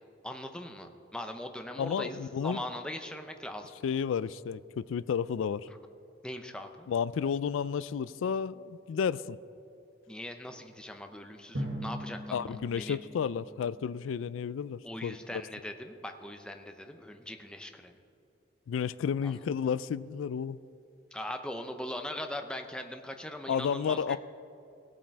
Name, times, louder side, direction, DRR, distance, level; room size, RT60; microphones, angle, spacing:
voice 1, 0.2-3.7 6.2-6.9 10.1-12.4 12.8-13.0 14.8-17.9 19.2-19.4 21.1-24.2, left 1 dB, 5° left, 5 dB, 0.6 m, -40 dB
voice 2, 1.8-2.6 3.8-5.7 6.9-9.4 12.3-15.2 18.7-20.6 23.5-24.2, left 7 dB, 90° left, 18 dB, 0.3 m, -32 dB
Drum, 11.5-14.3, equal, 65° right, 1.6 m, -40 dB
17.5 x 7.5 x 4.6 m, 2.8 s
head